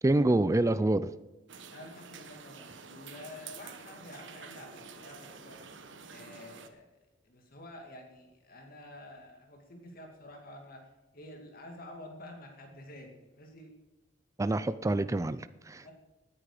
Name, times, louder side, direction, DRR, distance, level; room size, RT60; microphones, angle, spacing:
voice 1, 0.0-1.1 14.4-15.9, right 2 dB, 15° right, 13 dB, 0.4 m, -27 dB
sound 1, 1.5-6.7, right 5 dB, 85° right, 1.3 m, -48 dB
voice 2, 1.7-5.6 6.1-6.9 7.2-13.7 15.8-15.9, left 1 dB, 55° left, 2 dB, 2.2 m, -49 dB
18.5 x 9.7 x 5.0 m, 1.1 s
head